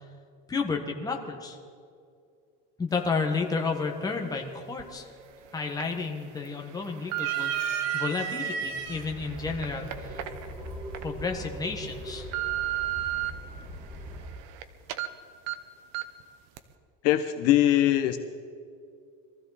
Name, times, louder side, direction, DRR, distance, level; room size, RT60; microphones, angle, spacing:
voice 1, 0.5-1.6 2.8-5.0 5.5-10.2 11.0-12.3, left 4 dB, 10° left, 2 dB, 1.5 m, -31 dB
sound 1, 4.8-4.9 5.5-5.8 6.5-8.1 8.7-11.0 11.5-11.6 12.0-13.3 13.7-14.6 14.9-15.1 15.5-15.6 15.9-16.2 16.6-16.7, right 14 dB, 60° right, 1.0 m, -33 dB
sound 2, 5.3-5.7 6.0-6.7 7.1-9.0 9.9-10.0 11.2-11.7, right 5 dB, 90° right, 2.2 m, -35 dB
sound 3, 8.6-14.3, equal, 30° right, 4.8 m, -41 dB
voice 2, 17.0-18.2, left 13 dB, 55° left, 8 dB, 0.8 m, -22 dB
23.0 x 15.0 x 4.2 m, 2.3 s
cardioid pair, 160°, 29 cm